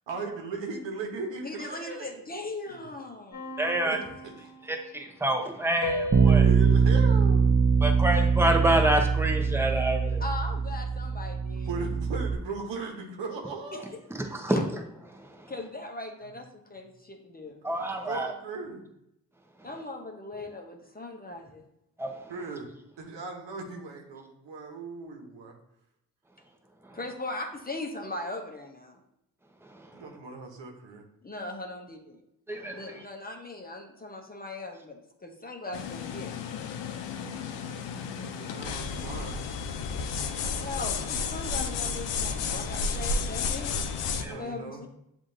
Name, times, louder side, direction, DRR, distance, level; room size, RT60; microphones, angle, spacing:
voice 1, 0.1-2.1 2.7-2.8 3.7-4.0 6.3-7.9 11.7-13.9 18.0-18.8 22.3-22.7 23.0-25.5 29.9-31.0 38.2-39.4 44.2-44.8, right 4 dB, 75° right, 2 dB, 1.0 m, -38 dB
voice 2, 1.4-3.6 10.2-11.7 13.7-13.8 14.5-14.6 15.5-17.6 19.6-21.6 26.9-29.0 31.2-32.2 32.7-36.5 40.6-43.8 44.3-44.9, left 2 dB, 20° left, 2 dB, 0.8 m, -39 dB
sound 1, 3.3-5.1 5.8-8.4, left 2 dB, 40° left, 1.3 m, -38 dB
voice 3, 3.6-4.0 4.7-6.5 7.8-10.2 14.1-14.6 15.2-15.5 17.6-18.3 22.0-22.3 26.9-27.0 29.8-29.9 32.5-32.8 37.2-38.4 40.2-40.6 44.2-44.4, right 1 dB, 5° right, 3 dB, 0.9 m, -28 dB
Bass guitar, 6.1-12.4, right 5 dB, 25° right, 0.5 m, -23 dB
sound 2, 35.7-44.3, left 5 dB, 70° left, 0.6 m, -32 dB
7.3 x 2.6 x 2.7 m, 0.81 s
supercardioid pair, 40°, 45 cm